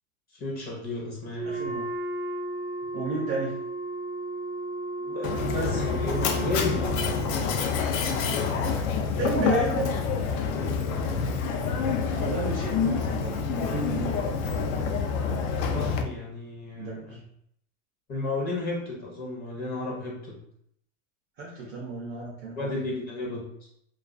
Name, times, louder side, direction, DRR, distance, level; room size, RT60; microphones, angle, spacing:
voice 1, 0.3-1.7 5.0-6.9 10.5-11.0 15.6-17.2 18.1-20.4 22.6-23.5, left 2 dB, 25° left, -3 dB, 0.5 m, -33 dB
Wind instrument woodwind instrument, 1.3-7.4, right 2 dB, 65° right, 0.7 m, -34 dB
voice 2, 1.4-1.9 2.9-3.6 9.2-9.9 12.1-14.2 16.8-17.2 21.4-22.7, right 3 dB, 30° right, -3 dB, 0.4 m, -32 dB
Mechanisms, 5.2-16.0, left 5 dB, 75° left, 0.5 m, -27 dB
2.4 x 2.2 x 2.4 m, 0.72 s
supercardioid pair, 135°, 41 cm